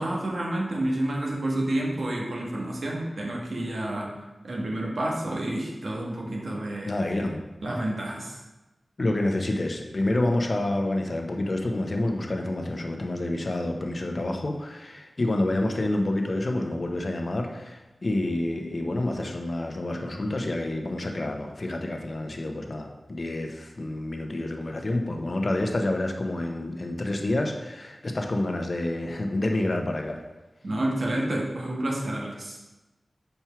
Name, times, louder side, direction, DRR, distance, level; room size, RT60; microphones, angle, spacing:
voice 1, 0.0-4.1 4.4-6.9 7.6-8.4 30.6-32.6, right 1 dB, 80° right, -2 dB, 1.4 m, -29 dB
voice 2, 6.8-7.4 9.0-30.2, left 1 dB, 50° left, 3 dB, 0.9 m, -28 dB
5.3 x 4.6 x 5.9 m, 1.1 s
wide cardioid pair, 60°, 0 cm